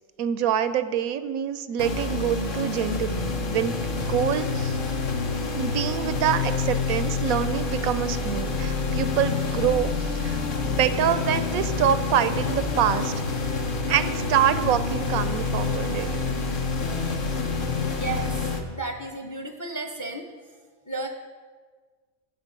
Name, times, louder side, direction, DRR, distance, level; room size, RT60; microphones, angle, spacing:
voice 1, 0.2-4.8 5.5-13.1 13.9-16.1, right 9 dB, 90° right, 12 dB, 1.1 m, -26 dB
sound 1, 1.8-18.6, left 4 dB, 45° left, 1.0 m, -27 dB
voice 2, 18.0-18.3 18.7-20.2 20.9-21.1, right 3 dB, 20° left, 4 dB, 0.6 m, -32 dB
10.5 x 7.7 x 5.3 m, 1.5 s
omnidirectional pair, 1.4 m